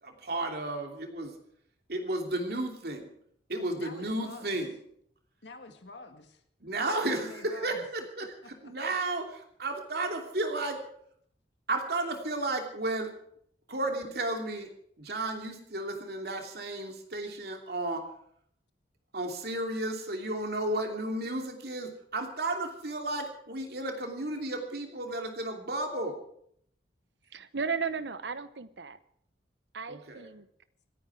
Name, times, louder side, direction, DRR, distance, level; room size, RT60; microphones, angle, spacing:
voice 1, 0.0-1.3 1.9-3.1 3.5-4.8 6.6-10.8 11.7-13.1 13.7-14.7 15.0-18.0 19.1-26.2 29.9-30.3, right 2 dB, 60° right, 2.9 m, -33 dB
voice 2, 3.8-4.6 5.4-6.4 7.1-7.9 8.4-8.9, left 3 dB, 80° left, 1.8 m, -48 dB
voice 3, 27.3-29.0 29.7-30.5, right 5 dB, 75° right, 0.9 m, -35 dB
26.5 x 9.8 x 4.7 m
head